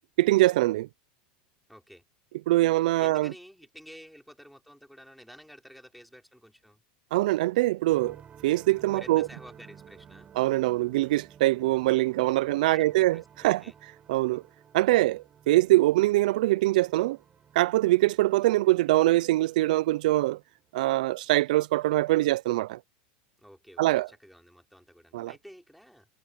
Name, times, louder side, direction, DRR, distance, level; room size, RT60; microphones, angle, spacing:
voice 1, 0.2-0.9 2.5-3.3 7.1-8.2 8.4-9.3 10.4-13.6 14.1-14.4 14.7-17.2 17.5-20.4 20.7-22.8 23.8-24.1 25.1-25.3, right 17 dB, 80° right, 0.4 m, -23 dB
voice 2, 1.7-2.0 3.0-6.8 8.9-10.3 12.6-13.7 14.9-15.1 23.4-26.1, equal, ahead, 4.7 m, -51 dB
sound 1, 7.9-20.6, right 8 dB, 30° right, 5.1 m, -54 dB
supercardioid pair, 120°, 4 cm